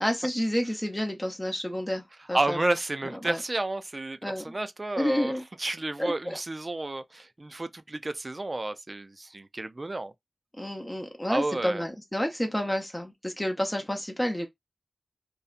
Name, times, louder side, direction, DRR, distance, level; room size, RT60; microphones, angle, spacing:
voice 1, 0.0-2.0 2.3-2.6 3.2-3.4 4.2-4.5 4.9-5.4 6.0-6.4 10.6-14.5, equal, 20° left, 0.6 m, -29 dB
voice 2, 2.3-5.3 5.6-10.1 11.3-11.9, right 2 dB, 40° right, 0.3 m, -31 dB
2.7 x 2.1 x 2.4 m
cardioid pair, 45°, 0 cm